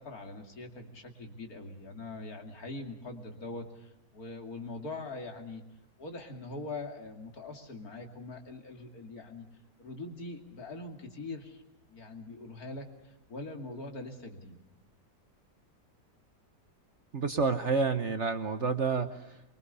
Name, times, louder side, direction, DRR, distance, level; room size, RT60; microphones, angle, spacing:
voice 1, 0.0-5.6 6.0-9.4 9.8-11.6 11.9-14.6, left 2 dB, 60° left, 3 dB, 3.1 m, -42 dB
voice 2, 17.1-19.4, right 4 dB, 45° right, 9 dB, 1.2 m, -29 dB
24.0 x 23.5 x 6.9 m, 0.94 s
omnidirectional pair, 1.8 m